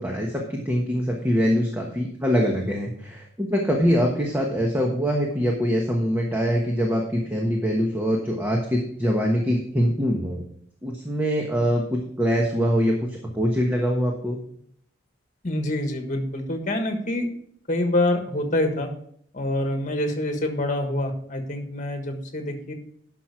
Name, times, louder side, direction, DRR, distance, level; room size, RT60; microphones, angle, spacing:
voice 1, 0.0-10.4 10.8-11.8 12.2-14.4, equal, 10° right, 0 dB, 1.2 m, -23 dB
voice 2, 15.4-17.3 17.7-18.9 19.3-22.7, left 1 dB, 40° left, 4 dB, 1.4 m, -26 dB
11.0 x 6.0 x 4.9 m, 0.65 s
head